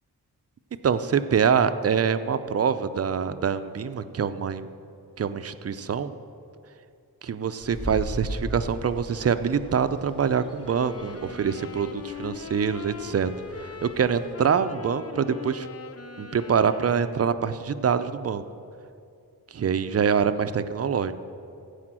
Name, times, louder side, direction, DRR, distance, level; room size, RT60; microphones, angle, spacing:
voice 1, 0.8-4.7 5.2-6.1 7.2-13.3 13.6-15.7 16.2-18.4 19.5-21.1, right 7 dB, 45° right, 12 dB, 0.5 m, -25 dB
sound 1, 7.6-14.3, equal, 15° left, 1.4 m, -39 dB
sound 2, 10.6-17.5, left 6 dB, 45° left, 0.6 m, -41 dB
14.5 x 5.0 x 7.5 m, 2.5 s
wide cardioid pair, 120°, 35 cm